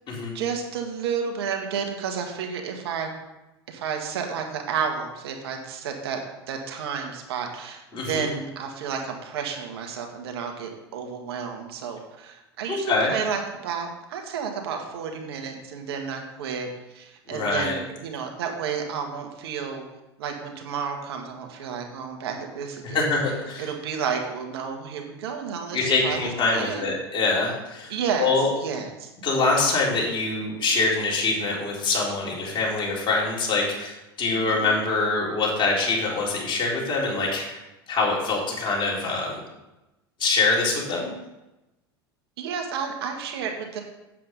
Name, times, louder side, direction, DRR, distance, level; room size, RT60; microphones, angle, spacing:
voice 1, 0.3-3.1 3.7-6.2 6.5-19.8 20.2-23.0 23.6-26.2 26.5-26.9 27.9-28.3 28.6-29.1 34.3-34.7 42.4-43.8, right 6 dB, 75° right, 3 dB, 1.8 m, -31 dB
voice 2, 7.9-8.3 12.7-13.1 17.3-17.8 22.8-23.7 25.7-27.9 28.2-28.5 29.2-37.6 37.9-39.4 40.2-41.1, left 3 dB, 35° left, -3 dB, 3.9 m, -24 dB
8.5 x 7.6 x 5.4 m, 0.99 s
hypercardioid pair, 90°, 13 cm